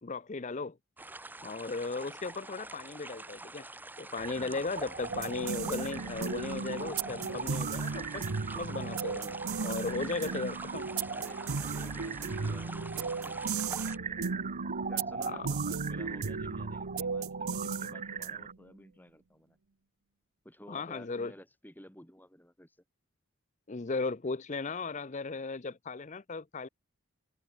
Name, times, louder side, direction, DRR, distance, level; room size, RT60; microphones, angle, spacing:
voice 1, 0.0-0.8 1.4-3.7 4.0-8.3 8.6-10.9 15.3-15.5 20.7-21.3 23.7-26.7, left 3 dB, 35° left, 0.6 m, -36 dB
sound 1, 1.0-14.0, right 2 dB, 10° right, 1.9 m, -46 dB
sound 2, 4.2-18.5, right 5 dB, 35° right, 1.4 m, -42 dB
sound 3, 5.1-18.6, right 4 dB, 80° right, 0.9 m, -36 dB
voice 2, 11.1-14.2 14.9-19.6 20.4-22.8, equal, 10° left, 3.0 m, -52 dB
head